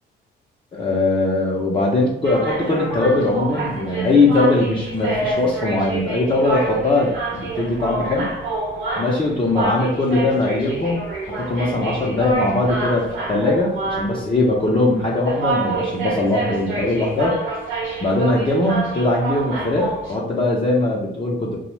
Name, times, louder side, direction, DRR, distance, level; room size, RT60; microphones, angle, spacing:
voice 1, 0.7-8.3 9.0-11.0 11.4-17.4 18.0-21.6, left 2 dB, 25° left, -4 dB, 0.5 m, -20 dB
sound 1, 2.2-20.1, right 3 dB, 75° right, 0.7 m, -27 dB
2.6 x 2.0 x 3.1 m, 0.78 s
cardioid pair, 90°, 20 cm